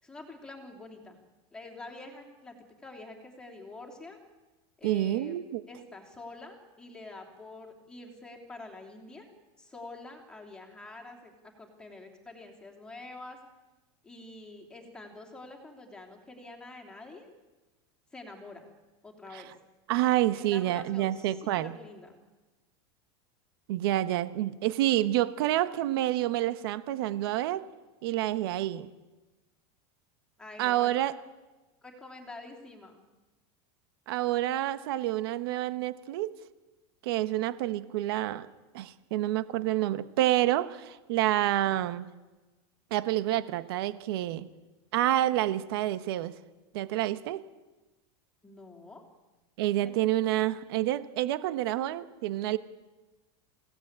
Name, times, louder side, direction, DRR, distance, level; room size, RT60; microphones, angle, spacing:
voice 1, 0.0-1.2 1.5-2.5 2.8-4.2 4.8-9.3 9.6-11.3 11.6-13.4 14.0-17.3 18.1-18.7 19.0-19.5 20.3-22.2 30.4-30.9 31.8-33.0 48.4-49.0 49.8-50.1, left 2 dB, 5° left, 1 dB, 3.0 m, -46 dB
voice 2, 4.8-5.6 19.3-19.4 19.9-21.7 23.7-27.7 28.0-28.9 30.6-31.2 34.1-36.4 37.0-38.5 38.7-42.1 42.9-44.4 44.9-46.3 46.7-47.4 49.6-52.6, right 14 dB, 60° right, 12 dB, 1.1 m, -28 dB
27.5 x 17.0 x 8.8 m, 1.2 s
supercardioid pair, 180°, 14 cm